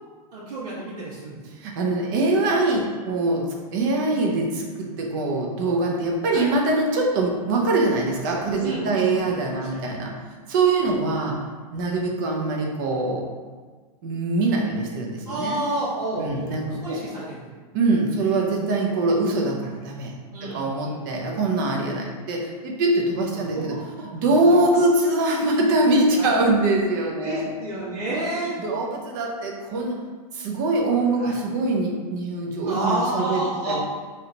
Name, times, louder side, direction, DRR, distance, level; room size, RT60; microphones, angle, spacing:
voice 1, 0.3-1.4 6.3-6.5 8.6-9.8 15.2-17.6 20.3-21.3 23.3-23.8 26.2-26.3 27.2-28.6 31.2-31.3 32.6-33.8, right 1 dB, 80° right, -10 dB, 1.3 m, -30 dB
voice 2, 1.6-3.4 3.7-10.1 10.5-11.4 11.7-13.2 14.0-15.6 16.2-17.0 17.7-20.1 20.4-23.8 24.1-27.5 28.1-28.2 28.6-30.0 30.3-33.4 33.7-33.8, right 2 dB, 30° right, 0 dB, 0.6 m, -23 dB
3.2 x 2.9 x 3.8 m, 1.5 s
supercardioid pair, 180°, 20 cm